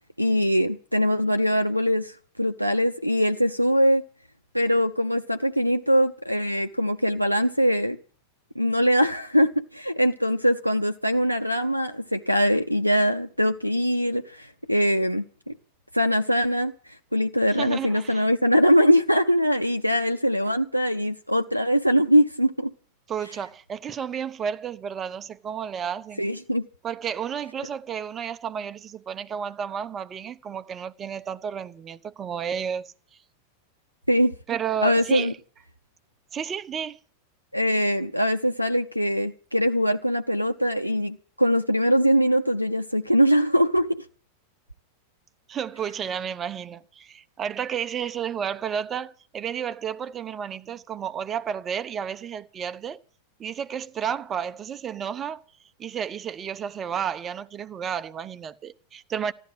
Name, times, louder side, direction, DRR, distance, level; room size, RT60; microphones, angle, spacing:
voice 1, 0.2-2.1 2.4-4.0 4.5-8.0 8.6-15.5 15.9-22.7 26.2-26.6 34.1-34.3 34.8-35.3 37.5-44.1, equal, 90° right, 0.7 m, -22 dB
voice 2, 17.5-18.2 23.1-26.2 26.8-32.9 34.5-35.3 36.3-37.0 45.5-53.0 53.4-55.4 55.8-59.3, right 8 dB, 25° right, 0.9 m, -32 dB
14.5 x 12.0 x 7.8 m
figure-of-eight pair, 90°, 0 cm